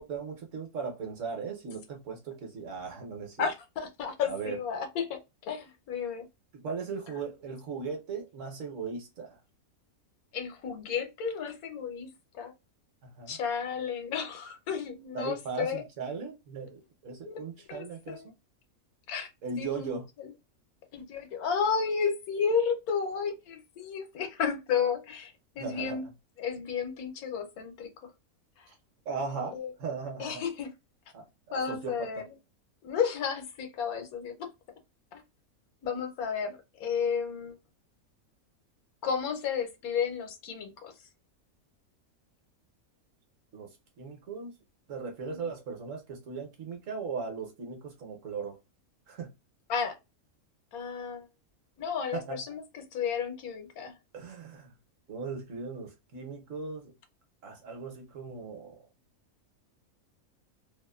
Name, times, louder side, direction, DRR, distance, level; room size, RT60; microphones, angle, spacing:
voice 1, 0.0-3.5 4.3-4.6 6.5-9.4 13.0-13.4 15.1-18.2 19.4-20.1 25.6-26.0 29.1-30.4 31.1-32.2 43.5-43.7 44.0-44.6 44.9-48.6 49.1-49.3 52.1-52.4 54.1-54.7 55.1-56.9 57.4-58.8, right 5 dB, 65° right, 1.1 m, -38 dB
voice 2, 3.4-5.2 5.5-6.3 10.3-12.1 12.3-12.5 13.3-15.8 17.3-17.4 17.7-18.2 19.1-19.3 19.6-20.3 20.9-26.1 26.4-27.9 29.5-29.7 30.2-30.7 31.5-32.2 32.8-34.5 35.1-35.2 35.8-37.6 39.0-40.9 45.3-45.5 49.7-50.0 50.7-51.3 51.8-52.6 52.9-53.9, left 6 dB, 90° left, 1.2 m, -32 dB
2.9 x 2.1 x 2.2 m
omnidirectional pair, 1.5 m